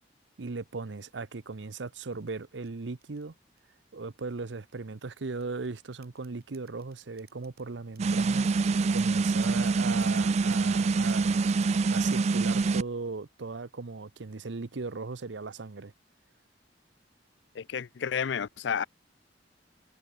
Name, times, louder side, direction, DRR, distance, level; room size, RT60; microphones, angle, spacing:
voice 1, 0.4-3.3 3.9-8.5 8.9-11.5 11.9-15.9, right 3 dB, 75° right, 0.8 m, -38 dB
sound 1, 1.4-3.8 4.5-7.6 8.0-8.6 9.0-12.0, right 13 dB, 55° right, 5.4 m, -60 dB
sound 2, 8.0-12.8, right 4 dB, 35° right, 0.4 m, -25 dB
voice 2, 17.5-18.8, left 7 dB, 75° left, 0.5 m, -31 dB
head